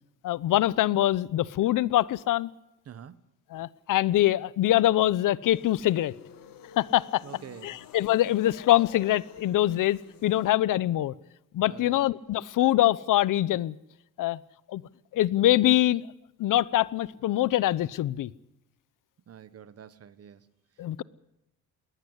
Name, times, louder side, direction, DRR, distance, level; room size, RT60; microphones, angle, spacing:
voice 1, 0.2-2.5 3.5-6.1 6.8-7.2 7.6-11.1 11.5-13.7 14.2-14.4 14.7-14.8 15.1-16.0 16.4-18.3 20.8-21.0, left 14 dB, 70° left, 20 dB, 0.8 m, -24 dB
voice 2, 2.8-3.2 7.2-7.7 11.7-12.0 19.3-20.5, right 9 dB, 45° right, 16 dB, 1.2 m, -46 dB
sound 1, 5.4-10.5, left 9 dB, 90° left, 2.2 m, -50 dB
21.5 x 18.5 x 8.1 m, 0.89 s
cardioid pair, 130°, 33 cm